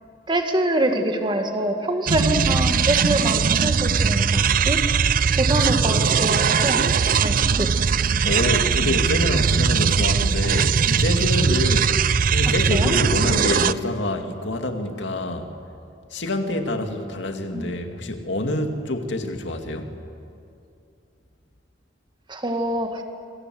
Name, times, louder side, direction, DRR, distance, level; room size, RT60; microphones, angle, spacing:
voice 1, 0.3-4.8 5.4-6.8 7.1-7.7 12.7-13.0 13.3-13.4 17.5-17.9 22.3-23.0, right 1 dB, 25° right, 5 dB, 2.2 m, -25 dB
sound 1, 2.1-13.7, right 6 dB, 50° right, 0.5 m, -20 dB
voice 2, 8.2-15.5 16.1-19.9, left 1 dB, 85° left, 5 dB, 2.4 m, -26 dB
27.0 x 25.5 x 7.9 m, 2.6 s
head